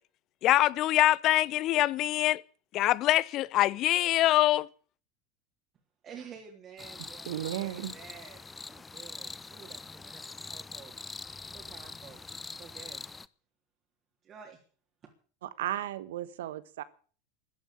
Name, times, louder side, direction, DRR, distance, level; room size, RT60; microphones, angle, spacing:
voice 1, 0.4-2.4 2.7-4.7, left 15 dB, 50° left, 0.8 m, -24 dB
voice 2, 6.0-10.9 11.5-12.2 12.5-13.0 14.2-14.6, right 7 dB, 35° right, 3.5 m, -50 dB
sound 1, 6.8-13.3, left 4 dB, 15° left, 0.8 m, -43 dB
voice 3, 7.3-7.9 15.4-16.8, right 12 dB, 70° right, 1.2 m, -35 dB
14.0 x 10.5 x 8.8 m
hypercardioid pair, 80°, 0 cm